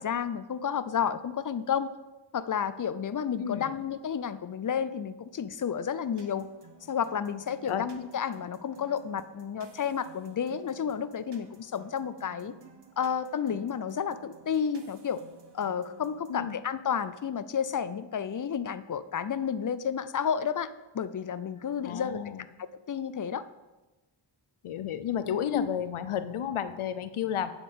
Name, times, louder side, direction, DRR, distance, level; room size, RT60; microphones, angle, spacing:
voice 1, 0.0-1.9 2.3-6.5 6.9-12.5 13.0-15.2 15.5-22.2 22.6-23.4 25.5-25.7, left 7 dB, 45° left, 14 dB, 0.4 m, -31 dB
voice 2, 3.4-3.8 7.7-7.9 16.3-16.6 21.8-22.4 24.6-27.5, left 9 dB, 90° left, 12 dB, 0.6 m, -32 dB
sound 1, 6.2-16.5, right 4 dB, 55° right, 1.0 m, -54 dB
8.1 x 7.0 x 3.6 m, 1.1 s
cardioid pair, 45°, 48 cm